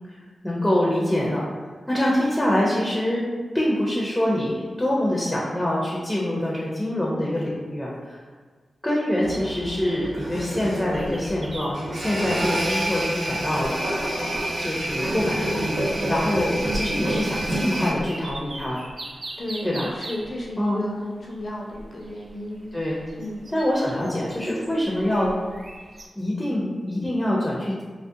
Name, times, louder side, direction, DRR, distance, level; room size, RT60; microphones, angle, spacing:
voice 1, 0.4-1.5 1.9-3.2 3.5-8.2 8.8-13.8 14.6-15.7 16.1-18.8 19.6-19.9 20.6-20.8 22.7-23.0 23.5-25.3 26.1-27.8, left 1 dB, 15° left, -5 dB, 0.5 m, -25 dB
sound 1, 9.2-17.9, right 1 dB, 90° right, 0.9 m, -28 dB
sound 2, 10.9-26.1, right 1 dB, 50° right, 0.3 m, -41 dB
voice 2, 19.4-22.7 23.2-23.5, left 1 dB, 60° left, -3 dB, 0.5 m, -33 dB
2.3 x 2.1 x 2.6 m, 1.5 s
cardioid pair, 45°, 0 cm